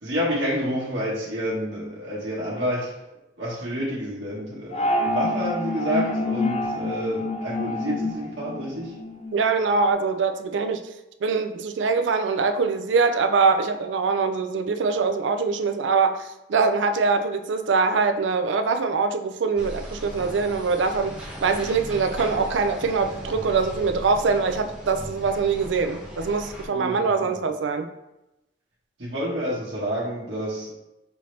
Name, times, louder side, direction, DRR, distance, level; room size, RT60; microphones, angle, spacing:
voice 1, 0.0-2.9 3.4-8.9 26.7-27.3 29.0-30.7, equal, 70° right, -7 dB, 1.3 m, -29 dB
sound 1, 4.7-9.3, left 2 dB, 35° left, 0.4 m, -27 dB
voice 2, 9.3-10.8 11.2-27.9, right 4 dB, 90° right, 7 dB, 0.4 m, -23 dB
sound 2, 19.6-26.6, equal, 5° right, 1.0 m, -38 dB
5.5 x 2.8 x 3.2 m, 0.94 s
head